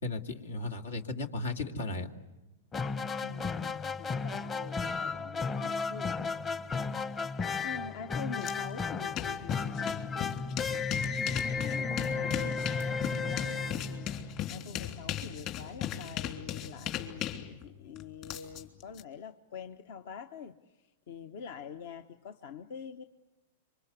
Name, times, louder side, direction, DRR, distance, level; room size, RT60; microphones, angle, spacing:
voice 1, 0.0-2.1, left 2 dB, 90° left, 5 dB, 2.4 m, -35 dB
sound 1, 2.7-14.6, left 4 dB, 20° left, 0.9 m, -34 dB
voice 2, 3.2-6.3 6.7-10.4 11.5-23.0, left 6 dB, 65° left, 8 dB, 1.1 m, -45 dB
sound 2, 8.4-8.5 8.8-19.0, left 11 dB, 45° left, 3.3 m, -37 dB
27.0 x 25.0 x 8.3 m, 1.0 s
hypercardioid pair, 120°, 0 cm